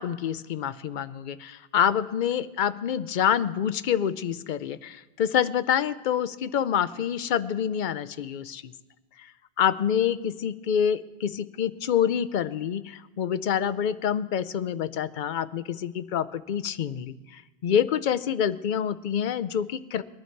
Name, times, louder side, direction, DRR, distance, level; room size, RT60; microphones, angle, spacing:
voice 1, 0.0-8.7 9.6-20.0, left 9 dB, 55° left, 14 dB, 0.7 m, -27 dB
21.5 x 11.0 x 4.5 m, 1.1 s
omnidirectional pair, 1.1 m